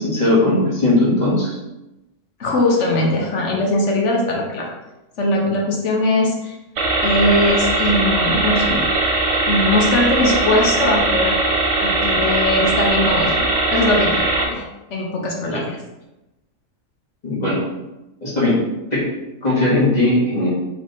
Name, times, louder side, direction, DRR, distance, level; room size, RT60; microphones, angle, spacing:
voice 1, 0.0-1.6 15.5-15.6 17.2-17.6 18.2-18.6 18.9-19.1 19.4-20.5, left 2 dB, 35° left, -7 dB, 1.5 m, -18 dB
voice 2, 2.4-4.7 5.2-6.6 7.0-8.9 9.4-11.3 11.8-13.4 13.7-14.6 14.9-15.6, left 1 dB, 65° left, -1 dB, 1.0 m, -20 dB
sound 1, 6.8-14.4, right 2 dB, 70° right, 1.1 m, -19 dB
3.2 x 3.2 x 4.0 m, 0.98 s
omnidirectional pair, 1.4 m